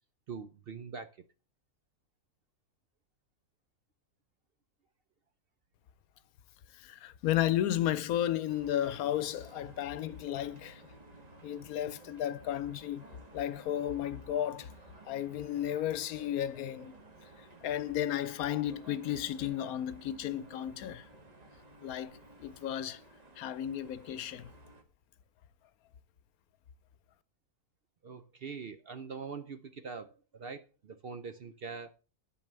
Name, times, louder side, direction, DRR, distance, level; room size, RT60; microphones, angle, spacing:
voice 1, 0.3-1.2 21.4-21.5 28.0-31.9, right 5 dB, 55° right, 0.7 m, -43 dB
voice 2, 6.7-10.8 11.4-13.0 13.3-14.7 15.1-16.9 17.4-21.1 21.8-23.0 23.4-24.5, left 11 dB, 80° left, 1.1 m, -33 dB
sound 1, 8.5-24.8, right 2 dB, 30° right, 1.4 m, -55 dB
10.5 x 4.6 x 6.7 m
omnidirectional pair, 1.5 m